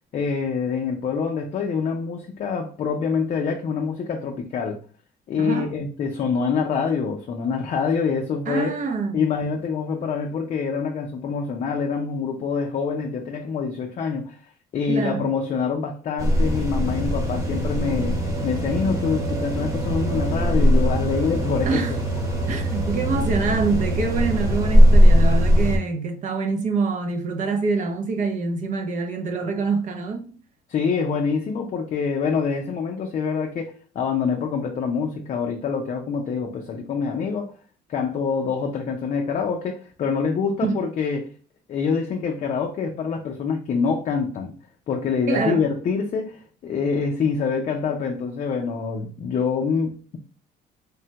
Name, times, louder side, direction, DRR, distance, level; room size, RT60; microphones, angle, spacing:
voice 1, 0.1-4.8 5.3-8.7 9.1-14.4 14.7-21.8 30.7-37.5 37.9-41.3 41.7-44.5 44.9-50.2, left 5 dB, 45° left, 0.5 m, -25 dB
voice 2, 5.4-5.7 8.5-9.3 14.9-15.3 21.6-21.9 22.5-30.2 40.6-40.8 45.3-45.6, right 4 dB, 50° right, 0.6 m, -25 dB
sound 1, 16.2-25.8, equal, 20° right, 1.0 m, -20 dB
3.3 x 2.1 x 2.8 m
cardioid pair, 110°, 17 cm